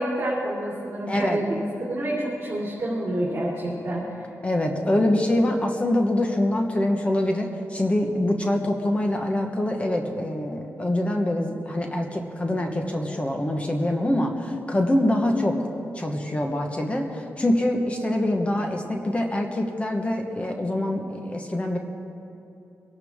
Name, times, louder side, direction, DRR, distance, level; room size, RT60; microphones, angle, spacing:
voice 1, 0.0-4.0 4.9-5.1, right 1 dB, 35° right, -7 dB, 3.3 m, -28 dB
voice 2, 1.1-1.4 4.4-15.6 15.9-21.8, left 1 dB, 20° left, 2 dB, 1.2 m, -24 dB
23.5 x 11.5 x 3.6 m, 2.8 s
wide cardioid pair, 120°, 6 cm